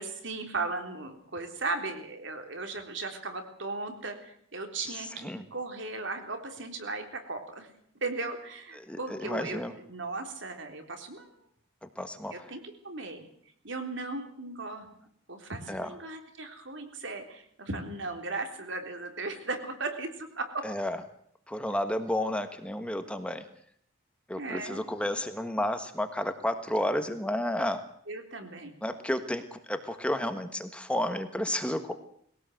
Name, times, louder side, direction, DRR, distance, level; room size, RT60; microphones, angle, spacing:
voice 1, 0.0-7.7 8.0-9.6 9.9-11.3 12.3-13.3 13.6-14.9 15.3-20.7 24.4-24.8 28.1-28.7, right 3 dB, 65° right, 6 dB, 3.7 m, -37 dB
voice 2, 4.9-5.4 8.7-9.7 11.8-12.5 15.7-15.9 20.6-21.0 21.5-23.4 24.3-27.8 28.8-31.9, left 1 dB, 5° left, 8 dB, 1.4 m, -32 dB
21.5 x 17.5 x 7.8 m, 0.65 s
head